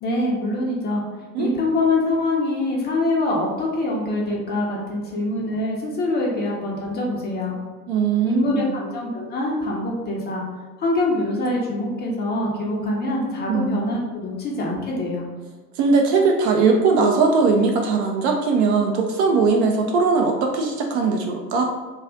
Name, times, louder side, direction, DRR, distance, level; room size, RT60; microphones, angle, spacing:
voice 1, 0.0-1.0 1.4-7.6 8.2-10.4 10.8-15.3, left 2 dB, 20° left, -3 dB, 0.5 m, -24 dB
voice 2, 7.9-8.8 13.5-13.7 15.8-21.6, right 4 dB, 45° right, 2 dB, 0.4 m, -20 dB
2.3 x 2.3 x 3.7 m, 1.3 s
figure-of-eight pair, 85°, 48 cm